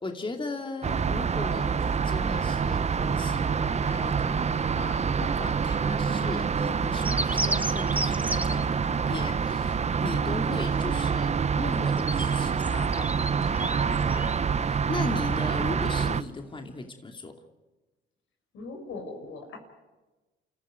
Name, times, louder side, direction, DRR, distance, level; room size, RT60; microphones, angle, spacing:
voice 1, 0.0-11.3 11.6-17.3, left 3 dB, 25° left, 3 dB, 2.6 m, -38 dB
sound 1, 0.8-16.2, right 6 dB, 35° right, 0.8 m, -26 dB
sound 2, 7.0-8.7 11.7-14.4, right 1 dB, 5° right, 1.4 m, -33 dB
voice 2, 18.5-19.6, left 3 dB, 80° left, 4 dB, 5.9 m, -39 dB
29.0 x 14.5 x 9.4 m, 1.2 s
cardioid pair, 90°, 20 cm